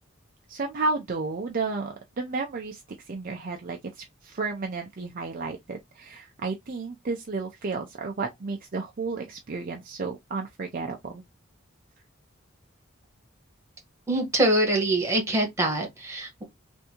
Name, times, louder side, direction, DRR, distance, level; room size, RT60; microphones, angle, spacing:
voice 1, 0.5-2.8 3.1-11.2, right 3 dB, 40° right, 0.5 m, -32 dB
voice 2, 14.1-16.4, right 1 dB, 15° right, 1.3 m, -24 dB
3.5 x 2.6 x 2.8 m
head